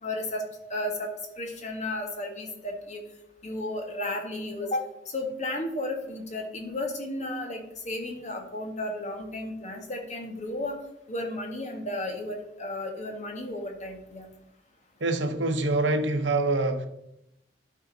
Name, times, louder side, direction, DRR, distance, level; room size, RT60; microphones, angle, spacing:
voice 1, 0.0-3.0 3.4-10.8 11.1-14.3, left 1 dB, 40° left, 1.5 m, -33 dB
voice 2, 15.0-16.9, right 2 dB, 70° right, 0.9 m, -25 dB
12.0 x 4.9 x 3.9 m
head